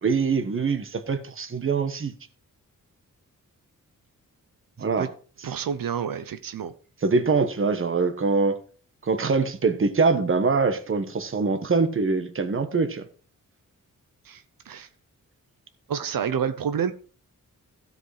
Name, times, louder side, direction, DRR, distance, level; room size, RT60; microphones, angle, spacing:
voice 1, 0.0-2.1 4.8-5.1 7.0-8.6 9.0-13.0, right 4 dB, 40° right, 1.3 m, -23 dB
voice 2, 5.4-6.7 14.3-14.9 15.9-16.9, right 7 dB, 85° right, 0.9 m, -29 dB
15.5 x 5.4 x 4.9 m
wide cardioid pair, 140°, 33 cm